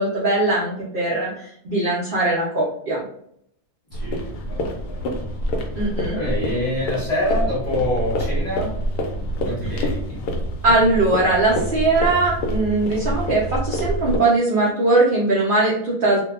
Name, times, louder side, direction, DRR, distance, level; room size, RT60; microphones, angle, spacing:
voice 1, 0.0-3.0 5.8-6.2 10.6-16.2, right 2 dB, 80° right, -6 dB, 0.4 m, -20 dB
sound 1, 3.9-14.2, equal, 75° left, 1.1 m, -26 dB
voice 2, 3.9-5.1 6.1-8.7 9.5-10.2, left 1 dB, 35° left, -6 dB, 0.8 m, -26 dB
2.6 x 2.1 x 2.4 m, 0.70 s
omnidirectional pair, 1.7 m